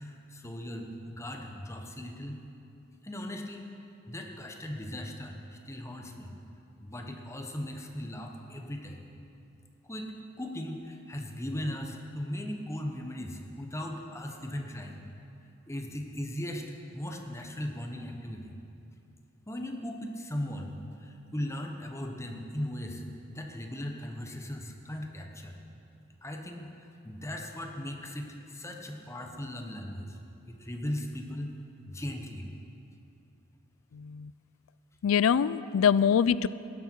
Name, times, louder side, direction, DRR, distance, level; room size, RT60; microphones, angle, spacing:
voice 1, 0.0-2.4 3.0-3.7 4.1-6.3 6.8-9.1 9.8-10.1 10.4-15.0 15.7-18.6 19.5-25.6 26.2-30.2 30.5-31.6 31.9-32.5, left 1 dB, 15° left, 2 dB, 1.0 m, -38 dB
voice 2, 33.9-34.3 35.0-36.5, left 7 dB, 90° left, 17 dB, 0.4 m, -24 dB
16.0 x 11.0 x 4.5 m, 2.7 s
head